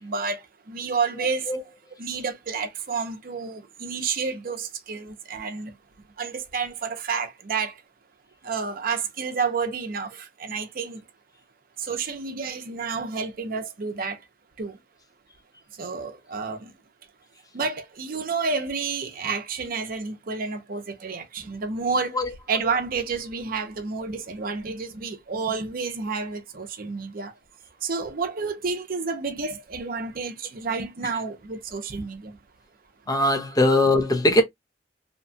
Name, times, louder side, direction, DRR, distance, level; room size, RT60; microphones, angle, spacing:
voice 1, 0.0-1.5 2.0-5.7 6.2-7.7 8.4-11.0 11.8-14.2 14.6-14.8 15.8-16.7 17.5-22.2 22.5-27.3 27.8-32.4 33.7-33.8, right 5 dB, 50° right, 0.6 m, -30 dB
voice 2, 33.1-34.4, left 1 dB, 20° left, 0.5 m, -20 dB
2.8 x 2.2 x 2.6 m
head